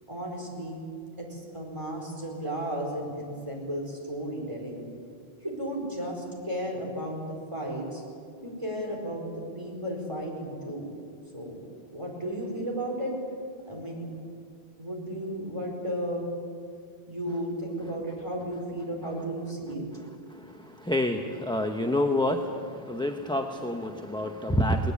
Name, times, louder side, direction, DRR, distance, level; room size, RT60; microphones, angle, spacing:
voice 1, 0.1-0.8 1.2-4.8 5.4-8.0 8.4-9.3 9.5-10.9 11.3-11.6 11.9-13.1 13.7-14.1 14.8-16.3 17.1-19.8, right 1 dB, 30° right, -1 dB, 4.8 m, -34 dB
voice 2, 20.8-22.4 22.9-24.9, left 1 dB, 5° left, 4 dB, 0.9 m, -27 dB
20.0 x 19.0 x 8.5 m, 2.2 s
omnidirectional pair, 1.1 m